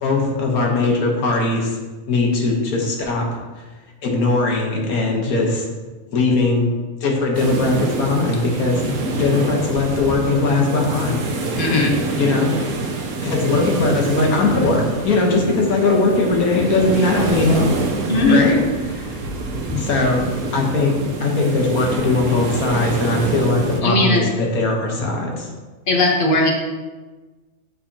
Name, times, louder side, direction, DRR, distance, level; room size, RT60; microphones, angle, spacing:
voice 1, 0.0-1.7 2.1-3.4 4.0-5.7 6.1-6.7 7.0-8.8 9.1-11.2 12.2-12.6 13.2-17.6 18.3-18.6 19.0-19.2 19.8-20.3 20.5-20.9 21.2-25.5, left 3 dB, 85° left, 0 dB, 1.6 m, -19 dB
sound 1, 7.3-23.8, right 3 dB, 65° right, 1.1 m, -26 dB
voice 2, 11.6-12.0 18.1-18.6 19.7-19.8 23.8-24.2 25.9-26.5, left 2 dB, 40° left, 0 dB, 1.0 m, -17 dB
8.6 x 4.2 x 2.8 m, 1.3 s
omnidirectional pair, 1.5 m